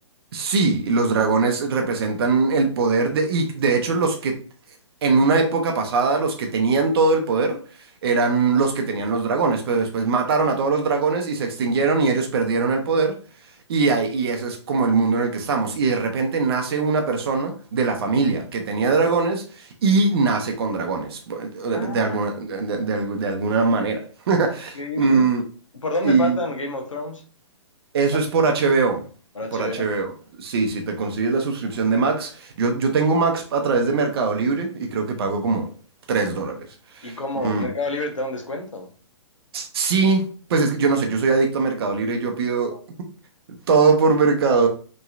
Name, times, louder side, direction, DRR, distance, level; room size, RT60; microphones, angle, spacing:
voice 1, 0.3-4.4 5.0-7.6 8.0-13.2 13.7-25.4 26.0-26.4 27.9-29.0 29.5-35.7 36.1-36.6 36.9-37.1 37.4-37.7 39.5-42.7 43.5-44.7, right 4 dB, 50° right, 0.7 m, -21 dB
voice 2, 21.7-22.2 24.7-25.2 25.8-27.2 29.3-30.0 37.0-38.9 42.7-42.8, left 2 dB, 85° left, 0.8 m, -29 dB
3.1 x 2.7 x 2.4 m
figure-of-eight pair, 125°, 16 cm